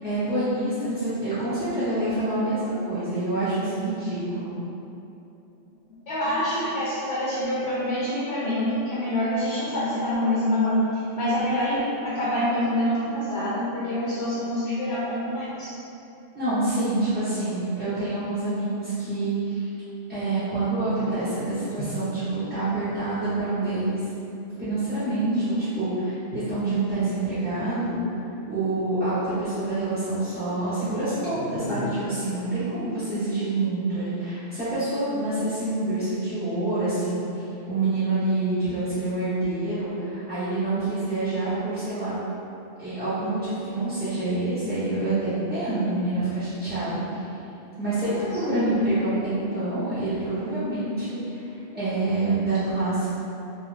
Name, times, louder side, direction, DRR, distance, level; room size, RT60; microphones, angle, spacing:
voice 1, 0.0-4.6 16.3-19.7 20.1-24.1 24.6-28.0 28.5-42.2 42.8-47.2 47.8-51.5 51.7-53.1, right 2 dB, 10° right, -16 dB, 0.5 m, -27 dB
voice 2, 6.1-10.8 11.2-15.7 21.0-21.2 31.4-31.8 48.5-48.7, left 1 dB, 65° left, -8 dB, 0.8 m, -26 dB
2.4 x 2.3 x 3.1 m, 2.9 s
omnidirectional pair, 1.3 m